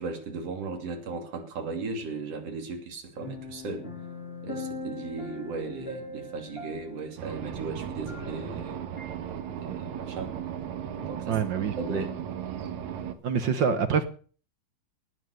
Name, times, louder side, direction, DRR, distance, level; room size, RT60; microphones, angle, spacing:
voice 1, 0.0-3.9 4.4-8.9 9.6-10.4 11.0-12.2, right 4 dB, 50° right, 3.8 m, -36 dB
sound 1, 3.2-8.6 9.0-9.1, left 3 dB, 15° left, 4.0 m, -40 dB
sound 2, 7.2-13.1, right 9 dB, 65° right, 2.5 m, -36 dB
voice 2, 11.3-11.7 13.2-14.0, right 6 dB, 80° right, 1.0 m, -25 dB
19.0 x 9.7 x 6.6 m
omnidirectional pair, 3.8 m